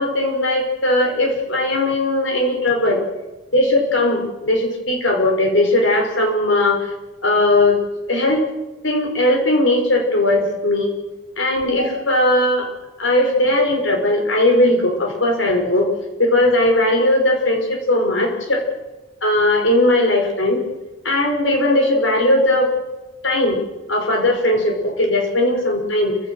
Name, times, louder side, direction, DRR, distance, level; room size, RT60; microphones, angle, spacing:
voice 1, 0.0-3.0 3.5-6.8 7.2-7.8 8.1-8.4 8.8-10.9 11.4-12.7 13.0-15.9 16.2-18.6 19.2-20.6 21.0-22.7 23.2-23.6 23.9-26.2, left 1 dB, 80° left, 2 dB, 5.5 m, -18 dB
29.0 x 16.0 x 6.4 m, 1.1 s
head